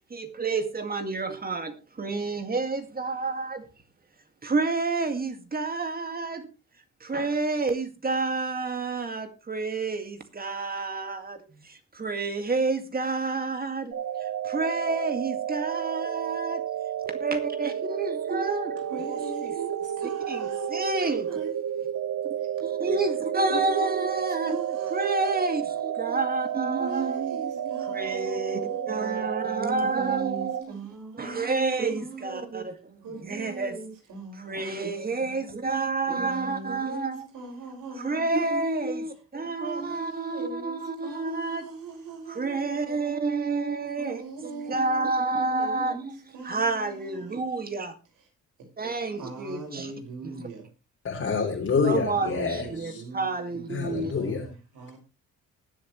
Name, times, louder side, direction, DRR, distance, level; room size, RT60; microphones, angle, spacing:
voice 1, 0.1-3.7 4.4-6.5 7.0-13.9 14.2-16.6 17.2-18.8 19.4-19.5 20.3-21.3 22.6-24.6 24.9-28.6 28.9-30.7 31.1-33.8 34.4-37.3 38.0-41.7 42.3-46.0 46.4-47.9 48.8-49.9 51.8-54.1, right 3 dB, 30° right, 2.1 m, -29 dB
sound 1, 13.9-30.6, right 9 dB, 60° right, 1.1 m, -31 dB
voice 2, 18.8-21.5 22.4-22.5 23.5-25.4 25.8-26.0 26.8-29.1 29.8-32.6 33.0-35.1 36.1-38.4 39.6-42.7 44.0-45.3 45.6-47.7 48.6-48.7 49.1-50.7 52.1-55.0, right 4 dB, 80° right, 5.8 m, -41 dB
voice 3, 51.0-53.0 53.7-54.5, left 5 dB, 50° left, 3.7 m, -27 dB
19.5 x 7.4 x 3.2 m
cardioid pair, 90°, 30 cm